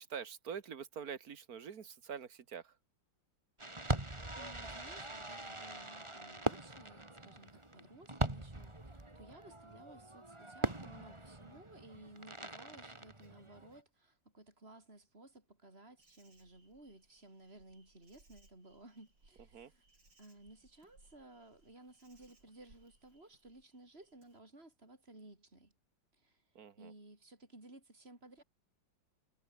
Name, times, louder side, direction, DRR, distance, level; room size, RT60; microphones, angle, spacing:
voice 1, 0.0-2.8 19.5-19.7 26.6-26.9, right 7 dB, 50° right, 1.9 m, -45 dB
Fireworks, 3.6-13.8, right 2 dB, 15° right, 2.5 m, -41 dB
voice 2, 3.8-19.8 20.2-25.7 26.2-26.4 26.8-28.4, right 2 dB, 30° right, 6.8 m, -57 dB
Insect, 16.0-24.4, right 2 dB, 70° right, 7.8 m, -68 dB
omnidirectional pair, 2.1 m